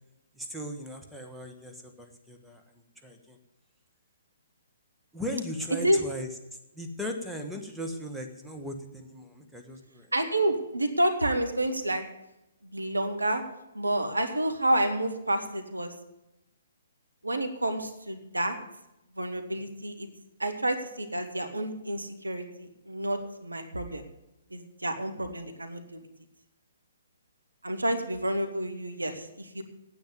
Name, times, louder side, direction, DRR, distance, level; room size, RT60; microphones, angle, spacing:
voice 1, 0.3-3.4 5.1-6.3 6.7-10.1 19.6-19.7, equal, ahead, 1 dB, 1.3 m, -38 dB
voice 2, 10.1-12.0 12.7-13.4 13.7-15.9 17.2-18.6 19.2-20.1 20.4-24.0 24.5-26.0 27.6-29.6, right 1 dB, 85° right, 6 dB, 1.7 m, -29 dB
9.4 x 9.1 x 9.3 m, 0.90 s
figure-of-eight pair, 125°, 0 cm